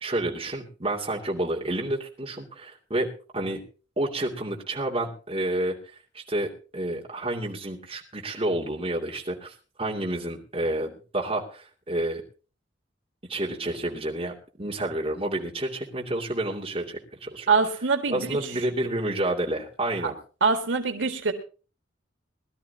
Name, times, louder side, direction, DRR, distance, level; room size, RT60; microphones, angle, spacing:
voice 1, 0.0-3.6 4.0-5.8 6.1-12.2 13.3-17.5 18.1-20.1, right 1 dB, 30° right, -2 dB, 2.6 m, -29 dB
voice 2, 17.5-18.4 20.0-20.1 20.4-21.3, right 4 dB, 85° right, 5 dB, 1.8 m, -24 dB
21.5 x 12.5 x 2.8 m, 0.36 s
head